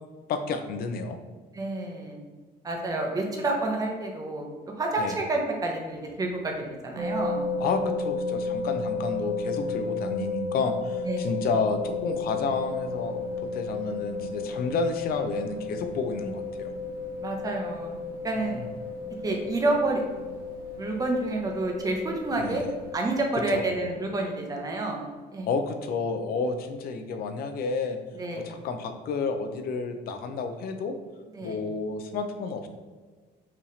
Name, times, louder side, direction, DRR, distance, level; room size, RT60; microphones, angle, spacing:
voice 1, 0.3-1.2 5.0-5.1 7.6-13.2 13.5-16.7 18.4-18.7 22.4-22.6 23.5-23.6 25.5-28.0 28.5-31.0 31.4-32.7, left 4 dB, 60° left, 7 dB, 0.6 m, -30 dB
voice 2, 1.5-2.2 2.6-4.5 4.7-7.4 11.0-11.4 17.2-17.9 18.2-18.6 19.2-20.0 20.8-22.6 22.9-25.5 28.1-28.5 31.3-31.6, right 2 dB, 20° right, 1 dB, 0.8 m, -29 dB
sound 1, 6.9-23.0, left 4 dB, 60° right, 1.0 m, -33 dB
sound 2, 12.1-24.1, right 3 dB, 85° right, 0.8 m, -50 dB
5.7 x 2.4 x 3.1 m, 1.4 s
cardioid pair, 110°, 17 cm